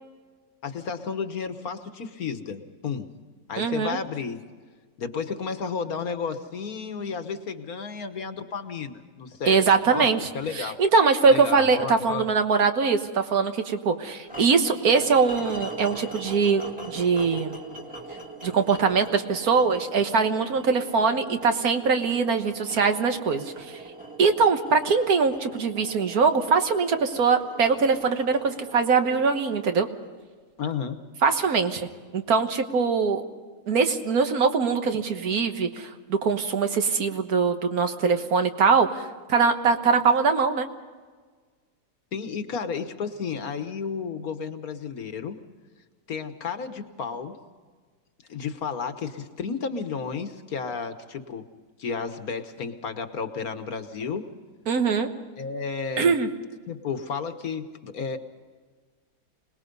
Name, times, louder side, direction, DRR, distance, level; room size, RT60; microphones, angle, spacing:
voice 1, 0.6-3.1 3.5-4.4 5.0-10.1 10.3-10.8 11.2-12.3 30.6-31.0 42.1-45.4 46.1-47.4 48.3-51.5 51.8-54.3 55.4-56.1 56.7-58.2, left 5 dB, 60° left, 9 dB, 1.7 m, -32 dB
voice 2, 3.6-4.0 9.5-10.3 10.5-17.6 18.4-23.5 24.2-29.9 31.2-31.9 32.1-33.2 33.7-40.7 54.7-55.1 56.0-56.3, right 5 dB, 65° right, 7 dB, 1.7 m, -22 dB
sound 1, 14.3-30.4, right 2 dB, 5° right, 1.7 m, -41 dB
26.0 x 20.0 x 5.3 m, 1.5 s
omnidirectional pair, 1.8 m